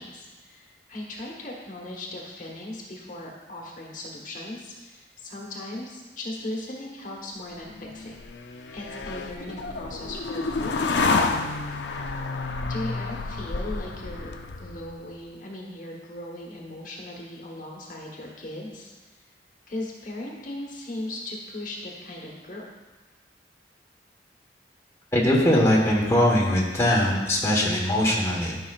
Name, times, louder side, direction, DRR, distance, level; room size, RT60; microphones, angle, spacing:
voice 1, 0.0-8.2 8.7-11.7 12.6-18.9 19.7-22.6, left 1 dB, 45° left, -1 dB, 1.2 m, -38 dB
sound 1, 7.6-15.0, left 3 dB, 80° left, 0.5 m, -29 dB
voice 2, 25.1-28.6, left 1 dB, 15° left, -4 dB, 1.2 m, -21 dB
13.0 x 5.8 x 2.4 m, 1.2 s
head